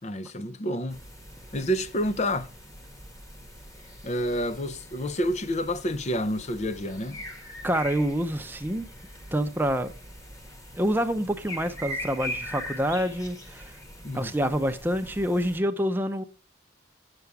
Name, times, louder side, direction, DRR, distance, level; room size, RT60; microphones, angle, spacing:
voice 1, 0.0-1.0 1.5-2.5 4.0-7.2 14.0-14.3, equal, 35° left, 0.6 m, -29 dB
sound 1, 0.9-15.6, left 1 dB, 15° left, 1.4 m, -42 dB
voice 2, 7.6-8.9 9.3-9.9 10.8-13.7 14.1-16.2, equal, 10° right, 0.7 m, -27 dB
8.2 x 7.0 x 4.8 m
head